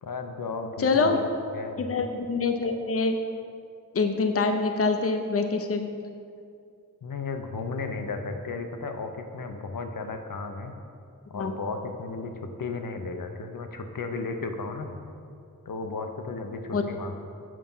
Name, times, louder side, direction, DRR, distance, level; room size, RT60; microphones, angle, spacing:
voice 1, 0.0-1.8 7.0-10.7 11.3-12.3 12.6-15.0 15.7-17.2, left 3 dB, 80° left, 5 dB, 0.8 m, -34 dB
voice 2, 0.8-1.4 1.8-3.2 3.9-5.9 11.3-11.5 16.7-16.8, left 4 dB, 45° left, 5 dB, 0.6 m, -25 dB
7.5 x 5.7 x 5.5 m, 2.5 s
wide cardioid pair, 90°, 33 cm